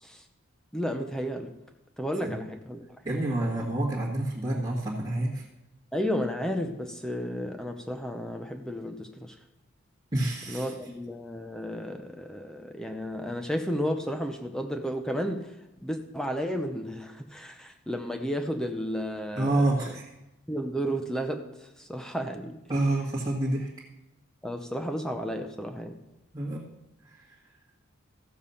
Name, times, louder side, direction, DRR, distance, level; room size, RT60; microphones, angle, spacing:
voice 1, 0.7-1.5 2.0-2.8 3.4-3.5 5.9-9.3 10.5-15.5 15.8-19.6 20.5-22.6 24.4-26.0, equal, 5° left, 5 dB, 0.7 m, -32 dB
voice 2, 3.0-5.4 10.1-10.7 19.4-20.1 22.7-23.7 26.3-26.7 27.1-27.3, right 1 dB, 20° right, -6 dB, 1.7 m, -28 dB
14.0 x 7.2 x 5.6 m, 0.96 s
head